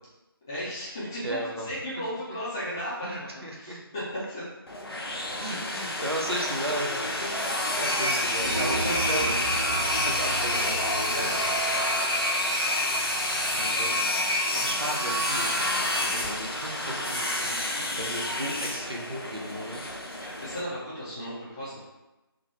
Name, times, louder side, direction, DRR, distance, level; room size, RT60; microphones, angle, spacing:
voice 1, 0.5-4.4 8.4-9.6 11.0-11.7 13.4-13.9 20.2-21.8, equal, 10° left, -11 dB, 0.5 m, -36 dB
voice 2, 1.2-1.7 3.0-3.8 5.4-11.4 13.7-14.0 14.5-19.8, right 1 dB, 85° right, -1 dB, 0.9 m, -35 dB
sound 1, 4.7-20.6, left 1 dB, 70° left, 0.7 m, -28 dB
sound 2, 8.5-11.9, right 2 dB, 40° right, 0.6 m, -35 dB
3.8 x 2.1 x 3.1 m, 1.0 s
figure-of-eight pair, 160°, 13 cm